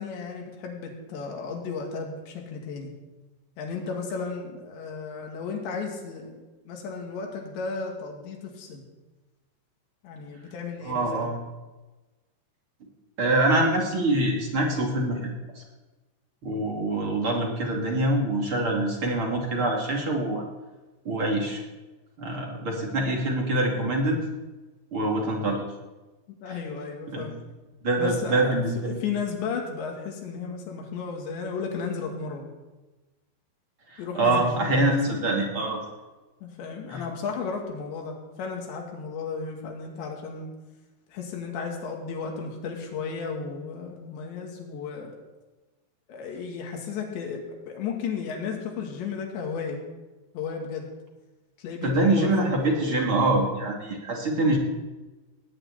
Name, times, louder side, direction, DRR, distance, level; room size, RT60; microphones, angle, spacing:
voice 1, 0.0-2.9 3.6-8.8 10.0-11.3 26.4-27.4 28.0-32.5 34.0-35.3 36.4-40.5 41.1-45.1 46.1-49.8 50.3-50.9 51.6-53.0, left 5 dB, 90° left, 1 dB, 4.6 m, -34 dB
voice 2, 10.9-11.4 13.2-15.3 16.4-20.4 21.0-21.6 22.2-24.2 24.9-25.6 27.1-27.3 27.8-29.0 33.9-35.8 36.9-37.0 51.8-54.6, right 2 dB, 35° right, -1 dB, 3.0 m, -25 dB
19.0 x 6.6 x 9.8 m, 1.2 s
omnidirectional pair, 4.9 m